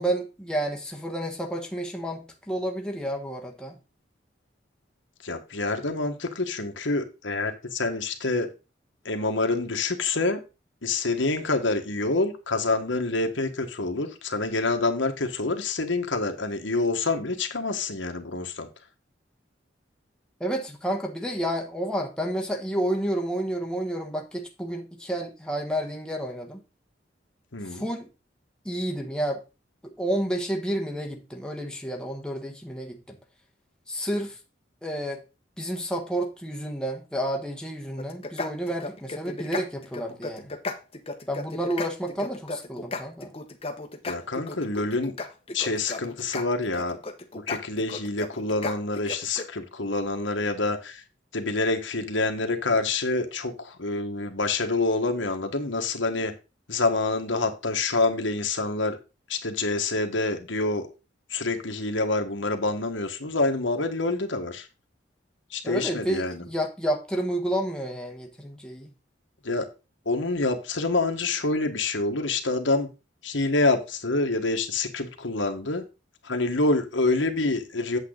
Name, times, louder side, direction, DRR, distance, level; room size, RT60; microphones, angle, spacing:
voice 1, 0.0-3.8 20.4-26.6 27.6-28.1 28.6-29.4 29.8-33.2 33.9-34.4 34.8-35.2 35.6-40.5 41.3-43.3 65.6-68.9, right 1 dB, 5° left, 1 dB, 1.3 m, -30 dB
voice 2, 5.2-8.5 9.0-10.4 10.8-18.7 27.5-27.8 44.0-45.1 45.5-47.0 47.3-51.0 51.3-56.3 56.7-59.0 59.3-60.9 61.3-64.7 65.5-66.4 69.4-69.6 70.0-72.9 73.2-75.9 76.2-78.0, left 3 dB, 85° left, 5 dB, 1.6 m, -27 dB
sound 1, 38.0-49.5, left 3 dB, 30° left, 1.1 m, -35 dB
8.4 x 7.5 x 3.9 m, 0.29 s
head